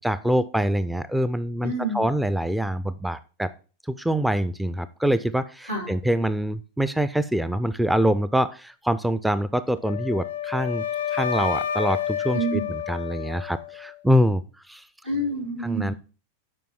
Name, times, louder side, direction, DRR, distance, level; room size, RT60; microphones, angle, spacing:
voice 1, 0.0-3.5 3.9-10.9 11.1-14.4 14.7-14.9 15.6-15.9, right 1 dB, 5° right, 14 dB, 0.4 m, -25 dB
voice 2, 1.6-2.1 5.7-6.0 12.3-12.7 15.0-16.0, right 2 dB, 80° right, 2 dB, 3.7 m, -28 dB
Wind instrument woodwind instrument, 9.8-13.9, left 9 dB, 65° left, 0.5 m, -29 dB
7.6 x 5.3 x 5.8 m, 0.36 s
figure-of-eight pair, 90°, 0 cm